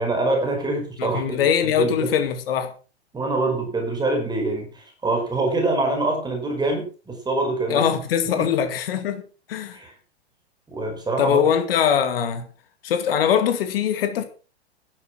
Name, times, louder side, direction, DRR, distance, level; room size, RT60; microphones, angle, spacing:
voice 1, 0.0-1.4 1.8-2.1 3.1-7.8 8.3-8.5 9.7-9.9 10.7-11.4, right 2 dB, 10° right, 5.2 m, -25 dB
voice 2, 1.0-2.7 7.7-9.2 9.5-9.8 11.2-12.5 12.8-14.2, left 8 dB, 60° left, 2.2 m, -22 dB
11.5 x 11.5 x 6.0 m
figure-of-eight pair, 105°, 33 cm